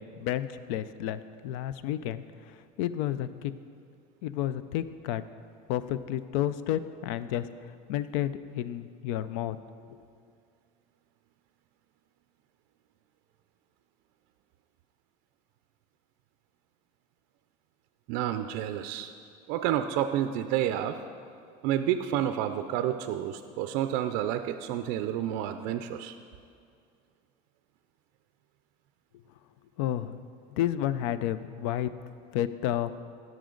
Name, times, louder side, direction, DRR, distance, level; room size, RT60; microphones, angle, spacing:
voice 1, 0.0-2.2 2.8-3.5 4.2-5.2 5.7-7.5 7.9-9.6 9.9-10.0 29.8-30.2 30.5-31.9 32.3-32.9, left 12 dB, 90° left, 14 dB, 0.4 m, -31 dB
voice 2, 18.1-19.1 19.5-21.0 21.6-26.2, right 11 dB, 60° right, 9 dB, 0.4 m, -29 dB
15.5 x 6.2 x 3.8 m, 2.2 s
cardioid pair, 175°, 17 cm